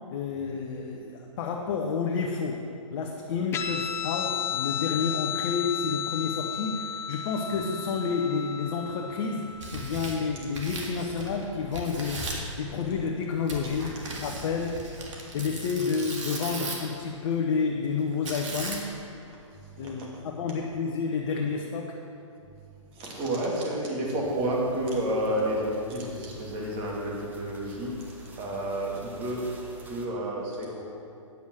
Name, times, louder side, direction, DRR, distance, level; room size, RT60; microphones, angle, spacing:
voice 1, 0.1-2.6 2.9-13.9 14.2-14.7 15.3-18.9 19.8-22.0, left 5 dB, 50° left, 1 dB, 0.9 m, -30 dB
Guitar, 3.5-10.4, left 8 dB, 15° left, 0.4 m, -33 dB
Tearing, 9.4-11.4 11.7-12.5 13.5-17.0 18.3-19.1, right 2 dB, 65° right, 2.1 m, -37 dB
voice 2, 19.8-20.1 22.9-27.9 28.4-29.5 29.9-30.8, right 1 dB, 30° right, -3 dB, 2.5 m, -30 dB
sound 1, 24.2-30.1, right 3 dB, 10° right, 1.0 m, -48 dB
9.4 x 7.2 x 6.3 m, 2.6 s
hypercardioid pair, 120°, 17 cm